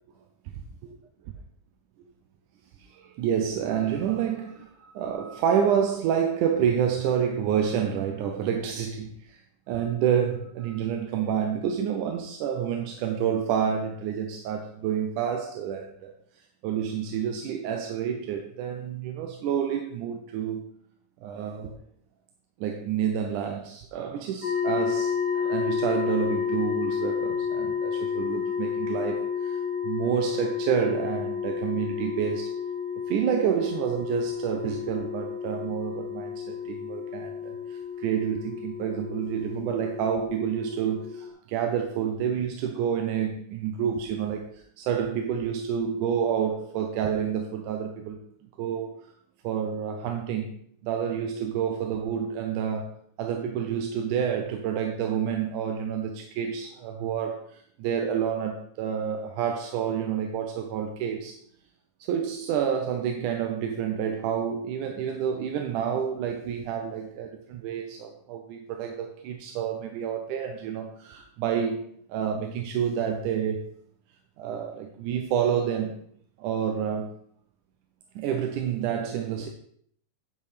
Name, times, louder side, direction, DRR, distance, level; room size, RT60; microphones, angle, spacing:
voice 1, 2.9-9.4 9.7-16.1 16.6-20.7 21.2-21.8 22.6-32.5 33.1-48.2 48.6-49.0 49.4-50.5 50.8-61.4 62.0-73.7 74.4-76.0 76.4-77.2 78.2-79.5, right 8 dB, 75° right, 4 dB, 2.2 m, -29 dB
sound 1, 24.4-41.3, left 7 dB, 90° left, 0.6 m, -31 dB
10.0 x 5.6 x 4.9 m, 0.64 s
omnidirectional pair, 3.7 m